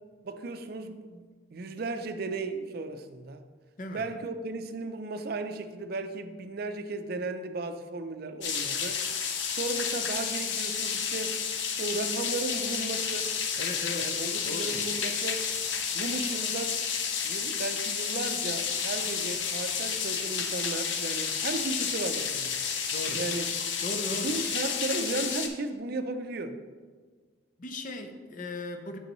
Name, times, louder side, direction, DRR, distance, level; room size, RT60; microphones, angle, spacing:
voice 1, 0.2-1.2 1.5-3.4 3.9-9.0 9.5-11.4 11.8-13.4 13.9-15.5 15.9-16.8 17.2-22.6 23.1-23.5 24.1-26.6, right 2 dB, 55° right, 9 dB, 0.5 m, -35 dB
sound 1, 8.4-25.5, left 6 dB, 85° left, 0.7 m, -31 dB
voice 2, 13.5-14.1 14.4-14.9 22.9-23.2 23.8-24.4 27.6-29.0, left 2 dB, 45° left, 6 dB, 0.6 m, -37 dB
8.0 x 6.2 x 3.0 m, 1.5 s
head